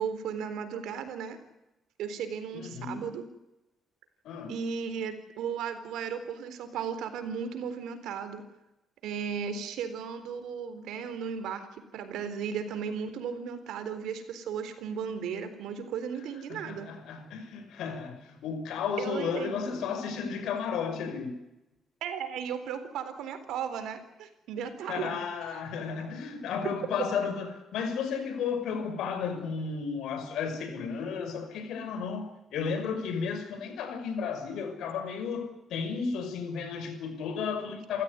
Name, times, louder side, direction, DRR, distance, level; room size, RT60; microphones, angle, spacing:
voice 1, 0.0-1.4 2.0-3.3 4.5-8.4 9.0-11.7 11.9-16.9 19.0-19.6 22.0-25.1, right 7 dB, 85° right, 3.9 m, -35 dB
voice 2, 2.5-3.1 4.2-4.6 16.5-21.4 24.9-38.0, left 6 dB, 80° left, 5.8 m, -33 dB
28.5 x 15.0 x 9.7 m
cardioid pair, 90°, 0 cm